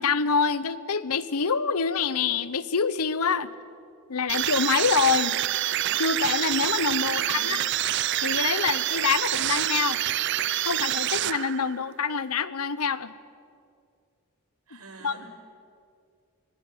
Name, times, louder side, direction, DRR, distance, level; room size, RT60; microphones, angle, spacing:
voice 1, 0.0-3.5 4.1-5.4 6.0-7.6 8.2-10.0 10.6-13.1 14.7-15.2, left 5 dB, 85° left, 16 dB, 0.9 m, -26 dB
sound 1, 4.3-11.8, right 12 dB, 50° right, 0.5 m, -27 dB
voice 2, 7.1-7.6 14.7-15.4, right 3 dB, 85° right, 2 dB, 5.6 m, -47 dB
25.0 x 18.0 x 9.0 m, 2.4 s
head